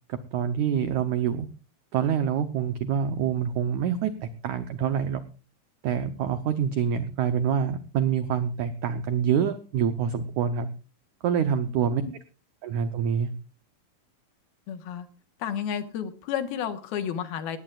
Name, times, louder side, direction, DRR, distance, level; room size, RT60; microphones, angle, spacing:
voice 1, 0.1-1.5 1.9-5.2 5.8-10.7 11.2-12.0 12.6-13.3, right 8 dB, 85° right, 10 dB, 1.6 m, -26 dB
voice 2, 14.7-15.1 15.4-17.6, left 8 dB, 75° left, 8 dB, 3.1 m, -31 dB
18.0 x 18.0 x 2.4 m, 0.34 s
omnidirectional pair, 4.6 m